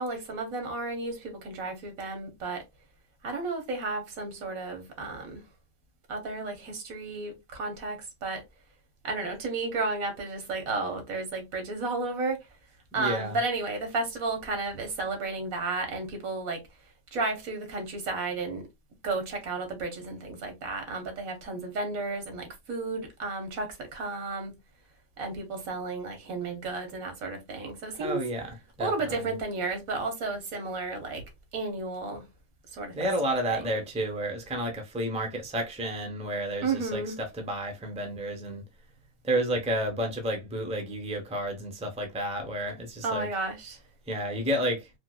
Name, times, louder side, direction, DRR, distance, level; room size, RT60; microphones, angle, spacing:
voice 1, 0.0-2.6 3.2-5.4 6.1-8.4 9.0-12.4 12.9-16.6 17.1-18.7 19.0-24.5 25.2-28.2 28.8-31.2 31.5-32.3 32.7-32.9 33.5-33.7 36.6-37.2 43.0-43.8, right 3 dB, 85° right, 1.5 m, -33 dB
voice 2, 13.0-13.4 28.0-28.5 28.8-29.3 32.9-38.6 39.2-43.3 44.1-44.9, right 1 dB, 5° right, 0.5 m, -31 dB
4.5 x 2.1 x 2.2 m
omnidirectional pair, 1.4 m